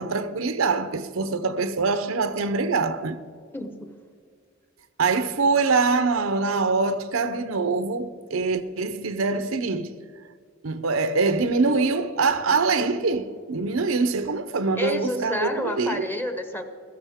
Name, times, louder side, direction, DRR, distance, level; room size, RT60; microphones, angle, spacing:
voice 1, 0.0-3.2 5.0-9.9 10.6-16.1, right 4 dB, 85° right, 0.7 m, -24 dB
voice 2, 3.5-3.9 14.8-16.6, left 1 dB, 10° left, 0.8 m, -29 dB
15.0 x 14.0 x 3.6 m
head